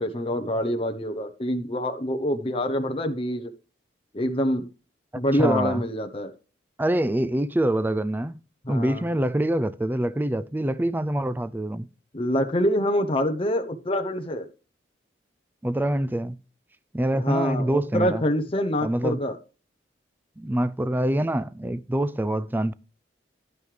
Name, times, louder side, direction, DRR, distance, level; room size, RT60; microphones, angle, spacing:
voice 1, 0.0-3.5 4.1-4.7 5.1-6.3 8.6-9.0 12.1-14.5 17.2-19.4, equal, 30° left, 0.9 m, -26 dB
voice 2, 5.4-5.8 6.8-8.4 8.7-11.9 15.6-16.4 16.9-18.2 18.8-19.2 20.4-22.7, right 1 dB, 10° right, 0.4 m, -25 dB
11.0 x 9.3 x 3.3 m
head